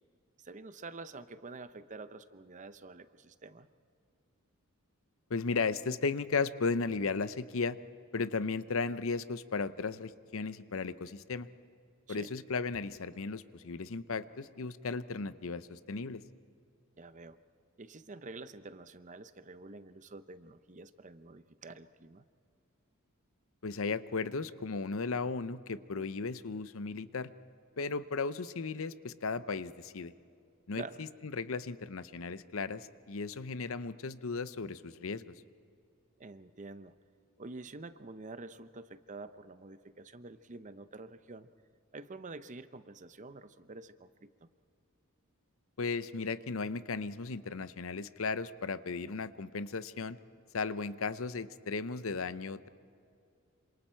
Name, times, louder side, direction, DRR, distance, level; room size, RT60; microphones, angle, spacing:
voice 1, 0.4-3.7 12.1-12.3 17.0-17.4 17.8-22.2 30.8-31.0 36.2-36.9 37.4-41.5 41.9-44.5, right 3 dB, 35° right, 12 dB, 0.7 m, -48 dB
voice 2, 5.3-7.8 8.1-11.5 12.1-16.2 23.6-27.3 27.8-30.1 30.7-35.3 45.8-50.2 50.5-52.7, left 4 dB, 65° left, 14 dB, 0.7 m, -35 dB
27.5 x 26.5 x 4.5 m, 2.5 s
head